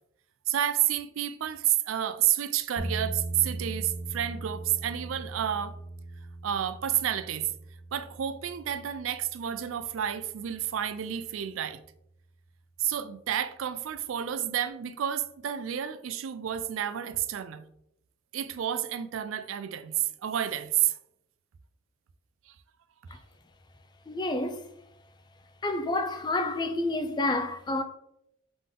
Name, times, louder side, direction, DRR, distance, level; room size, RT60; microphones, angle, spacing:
voice 1, 0.5-5.8 6.4-7.5 7.9-11.8 12.8-17.6 18.3-21.0, right 10 dB, 75° right, 0.4 m, -30 dB
sound 1, 2.8-10.8, right 2 dB, 10° right, 0.8 m, -40 dB
voice 2, 24.1-24.6 25.6-27.8, left 2 dB, 20° left, 0.4 m, -29 dB
3.9 x 3.6 x 3.7 m
head